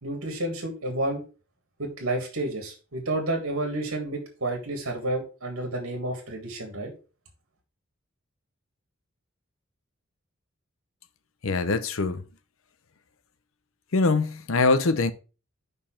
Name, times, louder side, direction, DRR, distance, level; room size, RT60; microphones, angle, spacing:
voice 1, 0.0-1.2 1.8-6.9, right 1 dB, 75° right, 1.8 m, -30 dB
voice 2, 11.4-12.2 13.9-15.1, left 3 dB, 70° left, 0.7 m, -23 dB
5.5 x 4.4 x 5.7 m
head